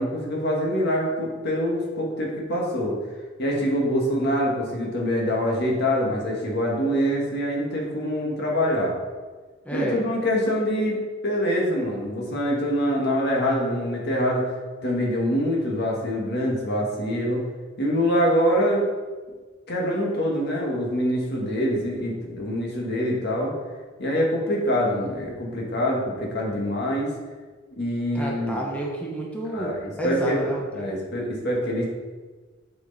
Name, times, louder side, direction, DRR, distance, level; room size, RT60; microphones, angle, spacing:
voice 1, 0.0-3.0 3.4-8.9 9.7-14.4 14.8-17.4 17.8-18.8 19.7-23.5 24.0-27.1 27.8-28.6 29.5-30.4 30.7-31.8, equal, 55° left, -1 dB, 1.7 m, -25 dB
voice 2, 9.6-10.0 28.1-31.0, right 1 dB, 5° left, -3 dB, 1.0 m, -30 dB
8.5 x 4.9 x 4.1 m, 1.4 s
head